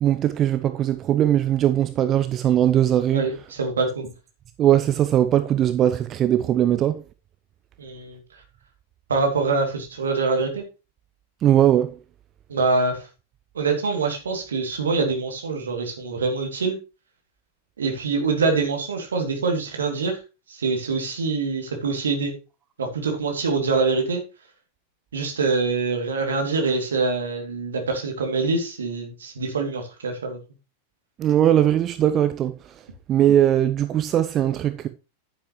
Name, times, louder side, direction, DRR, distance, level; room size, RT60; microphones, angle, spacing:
voice 1, 0.0-3.3 4.6-7.0 11.4-11.9 31.2-32.7 33.1-34.9, right 11 dB, 30° right, 0.7 m, -20 dB
voice 2, 3.1-4.1 7.8-8.2 9.1-10.6 12.5-13.1 13.5-16.8 17.8-20.2 20.5-22.3 22.8-24.2 25.1-30.4, right 4 dB, 70° right, 2.8 m, -24 dB
10.5 x 9.4 x 3.1 m
figure-of-eight pair, 90°, 0 cm